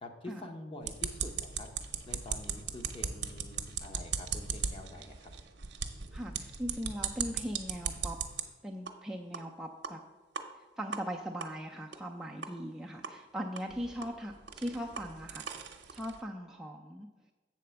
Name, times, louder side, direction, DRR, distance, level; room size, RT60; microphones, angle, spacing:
voice 1, 0.0-1.7 2.1-5.3, left 1 dB, 30° left, 4 dB, 0.8 m, -46 dB
sound 1, 0.8-8.4 8.9-9.0 9.3-9.4 9.8-9.9 10.3-10.4 10.9-11.0 11.4-11.5 11.9-12.0 12.4-12.5 13.0-13.1 13.6-16.2, right 7 dB, 70° right, 0.7 m, -38 dB
voice 2, 6.1-8.2 8.6-10.0 10.8-15.5 15.9-17.1, equal, 5° right, 0 dB, 0.4 m, -39 dB
7.5 x 4.2 x 6.8 m, 1.2 s
head